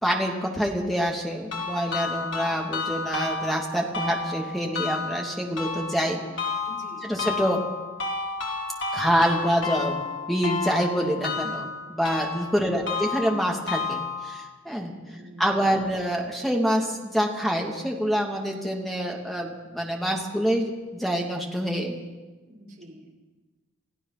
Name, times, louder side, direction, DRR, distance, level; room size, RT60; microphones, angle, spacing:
voice 1, 0.0-6.2 7.0-7.6 8.9-10.0 10.3-14.9 15.4-21.9, equal, ahead, -1 dB, 2.8 m, -26 dB
sound 1, 1.5-14.5, left 4 dB, 65° left, 4.5 m, -32 dB
voice 2, 6.7-7.1 15.1-15.7 22.5-23.1, equal, 45° right, -3 dB, 5.6 m, -47 dB
28.5 x 16.5 x 6.1 m, 1.2 s
head